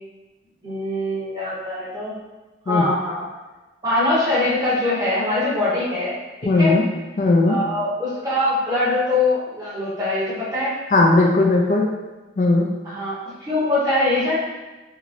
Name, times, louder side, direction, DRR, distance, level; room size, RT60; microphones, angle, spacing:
voice 1, 0.6-2.1 2.7-3.2 3.8-6.1 6.6-6.7 7.4-10.7 12.8-14.3, left 2 dB, 20° right, -9 dB, 1.0 m, -22 dB
voice 2, 6.4-6.9 7.2-7.6 10.9-11.9 12.4-12.7, left 2 dB, 40° left, 0 dB, 0.3 m, -17 dB
3.0 x 2.9 x 2.5 m, 1.1 s
head